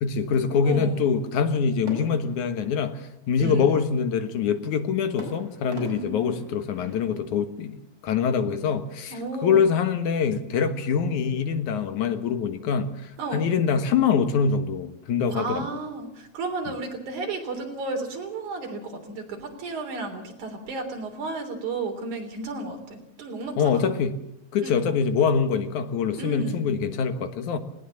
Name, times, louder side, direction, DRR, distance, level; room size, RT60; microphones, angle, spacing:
voice 1, 0.0-7.8 8.0-15.7 23.6-24.1 24.5-27.6, left 6 dB, 70° left, 2.7 m, -24 dB
voice 2, 0.6-1.0 3.4-3.7 5.9-6.4 9.1-9.7 13.2-13.5 15.3-23.8 24.6-24.7 26.2-26.6, right 3 dB, 70° right, 4.9 m, -33 dB
sound 1, 1.9-3.4 5.2-7.3, right 1 dB, 25° right, 5.1 m, -42 dB
19.0 x 19.0 x 7.2 m
omnidirectional pair, 3.6 m